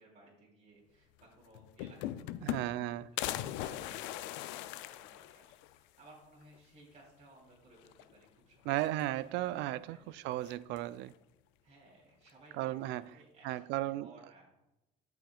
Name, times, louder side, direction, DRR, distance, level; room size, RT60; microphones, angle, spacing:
voice 1, 0.0-3.0 3.4-8.9 9.9-10.1 11.6-14.5, right 2 dB, 35° right, 3.3 m, -60 dB
sound 1, 1.2-1.3 1.5-2.9 3.2-5.8 6.2-6.3 6.5-6.6 7.8-8.3 8.6-9.4 10.4-11.0, left 13 dB, 80° left, 0.5 m, -40 dB
voice 2, 2.4-3.1 8.7-11.1 12.5-13.1 13.4-14.1, right 15 dB, 70° right, 0.4 m, -35 dB
14.5 x 5.9 x 2.4 m
supercardioid pair, 80°, 19 cm